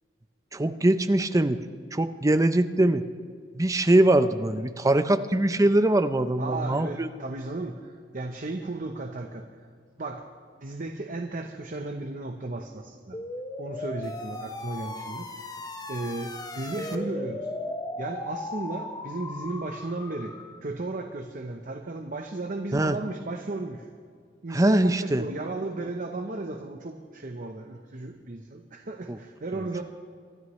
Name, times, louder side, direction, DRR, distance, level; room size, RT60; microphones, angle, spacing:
voice 1, 0.5-1.6 1.9-3.0 3.5-7.1 22.7-23.0 24.5-25.2 29.1-29.2, right 1 dB, 20° right, 10 dB, 0.5 m, -22 dB
voice 2, 6.4-9.5 10.0-10.3 10.6-13.2 13.6-15.6 15.9-17.5 18.0-20.3 20.6-23.9 24.4-29.8, right 2 dB, 45° right, 4 dB, 0.8 m, -35 dB
sound 1, 13.1-20.6, left 2 dB, 20° left, 0.8 m, -37 dB
25.0 x 13.0 x 3.2 m, 2.1 s
head